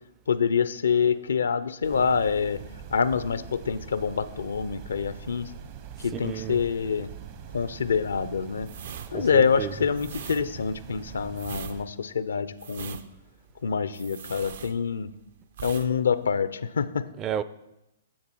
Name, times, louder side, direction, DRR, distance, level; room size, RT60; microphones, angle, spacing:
voice 1, 0.3-2.6 2.9-5.5 6.0-7.1 7.5-8.7 9.1-13.0 13.6-15.1 15.6-17.0, left 6 dB, 85° left, 0.5 m, -26 dB
sound 1, 1.8-11.8, right 8 dB, 45° right, 0.9 m, -43 dB
voice 2, 6.1-6.6 9.1-9.7 17.2-17.4, right 9 dB, 25° right, 0.4 m, -31 dB
sound 2, 8.7-15.2 15.5-15.9 16.2-16.4, right 8 dB, 65° right, 0.7 m, -41 dB
10.0 x 6.8 x 4.5 m
hypercardioid pair, 130°, 0 cm